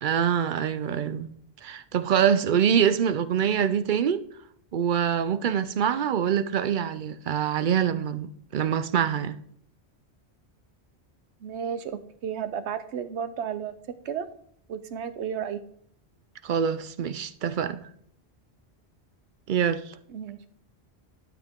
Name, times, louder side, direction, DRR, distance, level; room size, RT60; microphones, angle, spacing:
voice 1, 0.0-1.3 1.6-4.2 4.7-9.4 16.4-17.9 19.5-19.9, right 8 dB, 60° right, 0.6 m, -25 dB
voice 2, 11.4-13.8 14.0-14.3 14.7-15.6 20.1-20.5, right 8 dB, 90° right, 1.0 m, -33 dB
12.0 x 6.1 x 3.6 m
omnidirectional pair, 1.1 m